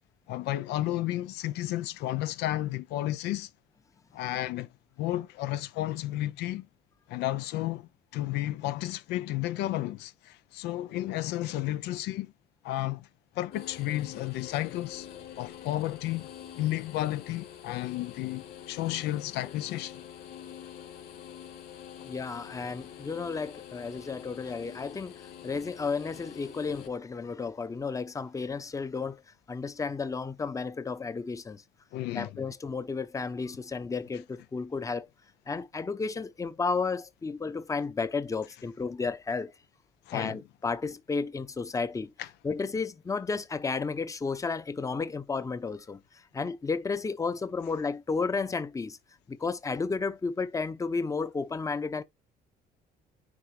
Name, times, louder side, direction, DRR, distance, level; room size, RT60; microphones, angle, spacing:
voice 1, 0.3-3.5 4.1-4.7 5.0-6.7 7.1-12.3 12.6-13.1 13.3-15.1 15.4-20.0 31.9-32.3 40.1-40.4 42.2-42.3, left 15 dB, 85° left, 0.6 m, -32 dB
sound 1, 13.5-26.9, left 9 dB, 65° left, 3.0 m, -46 dB
voice 2, 22.0-25.1 25.4-29.2 29.5-31.6 32.1-35.1 35.5-39.5 40.1-42.1 42.4-46.0 46.3-49.0 49.3-52.0, left 4 dB, 20° left, 0.7 m, -32 dB
9.7 x 3.3 x 3.3 m
cardioid pair, 110°, 17 cm